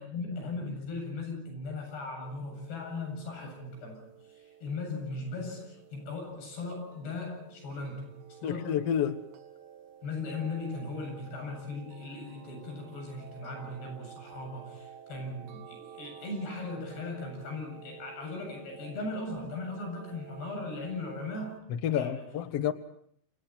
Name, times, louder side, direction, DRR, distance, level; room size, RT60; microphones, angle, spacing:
voice 1, 0.0-8.8 10.0-21.6 21.9-22.3, left 3 dB, 85° left, 10.0 m, -38 dB
sound 1, 2.2-21.6, right 8 dB, 65° right, 3.5 m, -51 dB
voice 2, 8.4-9.2 21.7-22.7, left 9 dB, 65° left, 1.6 m, -29 dB
29.0 x 27.5 x 4.5 m
omnidirectional pair, 4.7 m